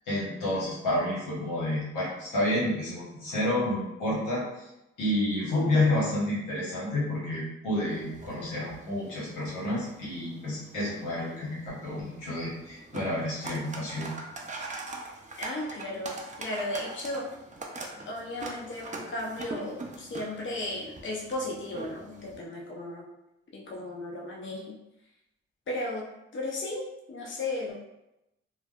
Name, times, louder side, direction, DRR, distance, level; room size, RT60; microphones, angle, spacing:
voice 1, 0.0-4.7 5.0-14.1, left 1 dB, 85° left, -7 dB, 1.0 m, -30 dB
sound 1, 7.9-22.4, right 3 dB, 25° right, 0.5 m, -43 dB
voice 2, 15.4-17.3 18.0-23.0 23.5-24.8 25.7-26.1 26.3-27.8, left 2 dB, 40° left, -2 dB, 0.7 m, -35 dB
3.2 x 2.0 x 2.3 m, 0.89 s
supercardioid pair, 45°, 30 cm